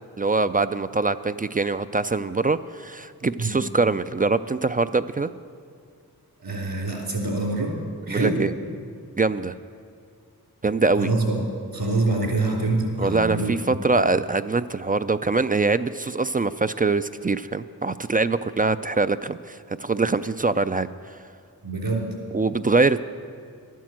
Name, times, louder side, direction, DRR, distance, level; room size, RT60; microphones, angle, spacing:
voice 1, 0.2-5.3 8.1-8.5 9.2-9.5 10.6-11.1 13.0-21.1 22.3-23.1, right 3 dB, 25° right, 12 dB, 0.3 m, -23 dB
voice 2, 6.4-7.7 8.1-8.3 11.0-11.4 11.7-13.7 21.6-22.1, right 2 dB, 70° right, -1 dB, 3.2 m, -25 dB
12.0 x 9.3 x 7.5 m, 2.2 s
cardioid pair, 45°, 38 cm